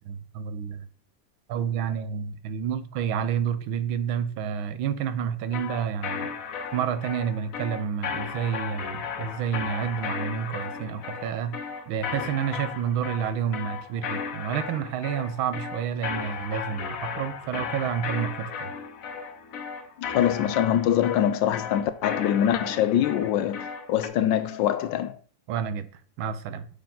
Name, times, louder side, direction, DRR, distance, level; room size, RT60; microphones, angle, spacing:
voice 1, 0.0-0.9 1.5-6.3 6.7-11.5 11.9-18.7 25.5-25.9 26.2-26.7, right 8 dB, 85° right, 1.6 m, -29 dB
sound 1, 5.5-24.1, left 6 dB, 55° left, 1.0 m, -35 dB
voice 2, 20.0-25.2, left 10 dB, 75° left, 1.2 m, -24 dB
6.6 x 5.9 x 3.9 m
omnidirectional pair, 2.2 m